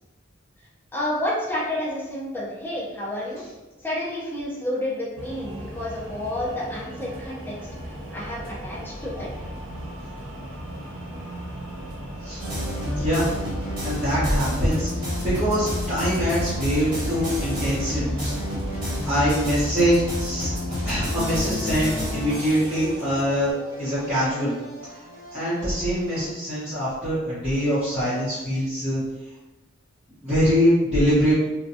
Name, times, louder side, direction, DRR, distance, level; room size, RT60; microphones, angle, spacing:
voice 1, 0.9-3.4 3.8-7.7 8.1-9.3, left 1 dB, 10° left, -7 dB, 0.6 m, -30 dB
sound 1, 5.2-23.5, equal, 75° right, 1.0 m, -37 dB
sound 2, 12.4-26.3, left 1 dB, 25° right, 1.3 m, -30 dB
voice 2, 12.9-13.3 13.8-18.3 18.8-20.5 20.8-23.5 23.8-24.5 25.3-29.0 30.2-31.3, equal, 5° right, -16 dB, 1.1 m, -23 dB
3.2 x 2.3 x 2.7 m, 1.1 s
head